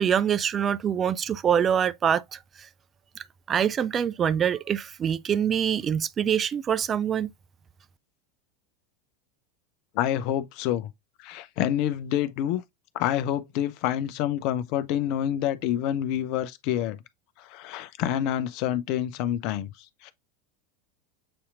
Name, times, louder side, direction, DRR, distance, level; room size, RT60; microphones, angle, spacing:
voice 1, 0.0-2.4 3.5-7.3, right 8 dB, 30° right, 0.3 m, -25 dB
voice 2, 9.9-10.9 11.2-12.6 12.9-17.0 17.4-19.7 20.0-20.1, left 11 dB, 50° left, 0.6 m, -27 dB
7.7 x 2.8 x 2.4 m
figure-of-eight pair, 80°, 0 cm